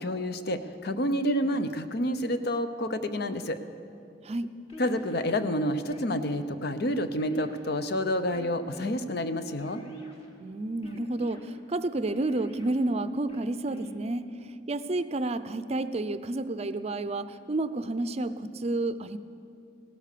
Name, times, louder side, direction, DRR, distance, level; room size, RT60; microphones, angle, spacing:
voice 1, 0.0-3.6 4.8-9.8, equal, 60° left, 10 dB, 0.8 m, -29 dB
sound 1, 4.7-5.3 5.9-6.4 7.1-7.9 8.3-8.9 9.6-10.3 10.8-11.4 12.1-12.7 13.3-13.9, equal, 35° left, 1.9 m, -44 dB
voice 2, 10.4-14.2 14.7-19.2, right 2 dB, 35° right, 13 dB, 0.5 m, -30 dB
17.0 x 12.5 x 6.7 m, 2.5 s
head